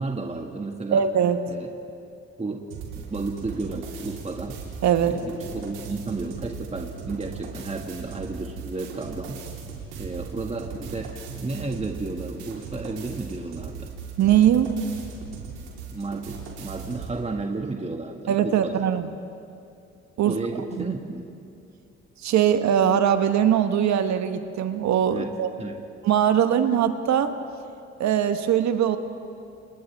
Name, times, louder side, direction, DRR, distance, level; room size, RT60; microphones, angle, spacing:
voice 1, 0.0-1.1 1.5-1.7 2.4-4.6 5.0-9.4 10.0-13.9 15.9-18.9 20.2-21.2 25.1-25.8, right 3 dB, 20° right, 2 dB, 2.0 m, -33 dB
voice 2, 0.9-1.4 4.8-5.2 14.2-14.7 18.3-19.1 20.2-20.3 20.8-20.9 22.2-25.5 26.0-27.3 28.0-29.0, right 9 dB, 65° right, 9 dB, 1.3 m, -21 dB
sound 1, 2.7-17.1, right 5 dB, 80° right, 3.9 m, -38 dB
30.0 x 28.0 x 3.6 m, 2.5 s
hypercardioid pair, 60°, 30 cm